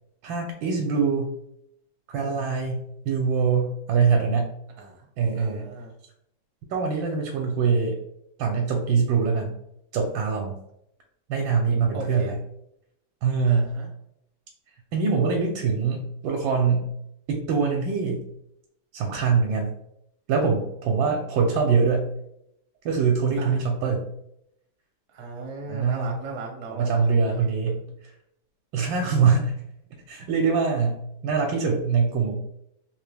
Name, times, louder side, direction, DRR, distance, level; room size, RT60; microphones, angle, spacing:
voice 1, 0.2-1.3 2.1-4.5 5.2-5.6 6.7-8.0 8.4-9.5 9.9-10.6 11.3-12.3 13.2-13.8 14.9-16.9 17.3-18.2 18.9-19.7 20.3-22.1 22.8-24.0 25.7-26.2 26.7-27.8 28.7-29.5 30.1-32.3, right 5 dB, 80° right, 1 dB, 1.3 m, -23 dB
voice 2, 4.8-5.1 5.4-5.9 11.9-12.4 13.5-13.9 23.4-23.6 25.1-27.5, right 3 dB, 55° right, 0 dB, 0.8 m, -38 dB
3.5 x 2.9 x 3.3 m, 0.78 s
omnidirectional pair, 2.1 m